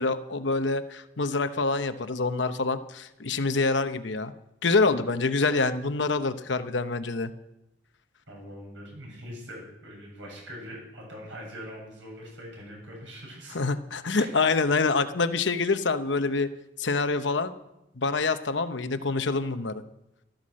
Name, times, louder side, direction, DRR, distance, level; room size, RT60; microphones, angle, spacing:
voice 1, 0.0-4.3 4.6-7.3 13.5-16.5 16.8-17.5 18.0-19.8, left 3 dB, 75° left, 10 dB, 0.9 m, -26 dB
voice 2, 8.3-13.6 14.1-14.3, equal, 75° right, -1 dB, 7.8 m, -42 dB
13.5 x 13.0 x 6.4 m, 0.88 s
head